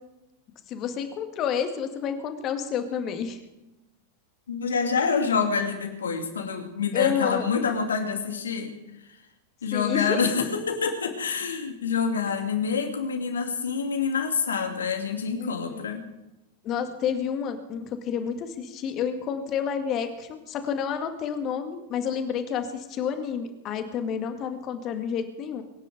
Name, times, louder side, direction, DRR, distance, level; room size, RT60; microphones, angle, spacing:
voice 1, 0.7-3.4 6.9-7.5 9.7-10.2 15.4-15.8 16.6-25.6, left 7 dB, 35° left, 7 dB, 2.1 m, -30 dB
voice 2, 4.5-8.7 9.6-16.0, left 6 dB, 70° left, 4 dB, 2.6 m, -27 dB
23.5 x 9.9 x 5.2 m, 0.95 s
figure-of-eight pair, 90°, 0 cm